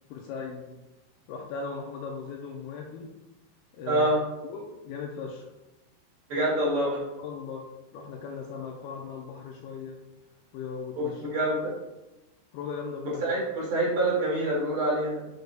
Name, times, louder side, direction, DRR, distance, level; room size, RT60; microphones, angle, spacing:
voice 1, 0.1-0.8 1.3-3.1 3.7-4.1 4.4-5.5 7.2-7.7 7.9-10.0 10.5-11.3 12.5-13.2, left 5 dB, 90° left, 0 dB, 2.2 m, -38 dB
voice 2, 3.9-4.2 6.3-7.0 11.0-11.1 11.3-11.7 13.2-15.3, right 1 dB, 45° right, -6 dB, 3.0 m, -26 dB
6.6 x 6.6 x 2.3 m, 1.0 s
omnidirectional pair, 5.0 m